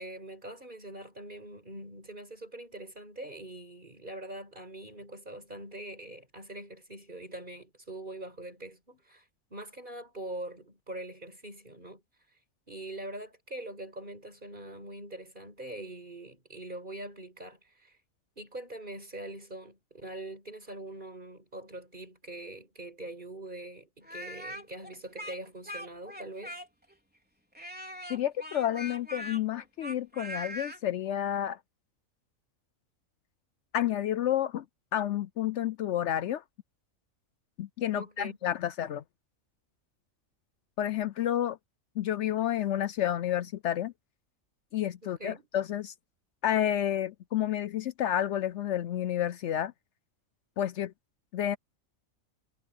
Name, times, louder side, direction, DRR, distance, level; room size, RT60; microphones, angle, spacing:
voice 1, 0.0-9.2 9.5-12.0 12.7-18.0 18.4-26.6 37.9-38.4 45.0-45.5, right 1 dB, 35° right, 6.1 m, -43 dB
Speech, 24.0-26.9 27.5-30.8, equal, 5° right, 3.9 m, -41 dB
voice 2, 28.1-31.6 33.7-34.6 34.9-36.4 37.6-39.0 40.8-41.6 42.0-43.9 44.7-45.9 46.4-49.7 50.6-50.9 51.3-51.6, left 11 dB, 65° left, 0.8 m, -30 dB
omnidirectional pair, 1.4 m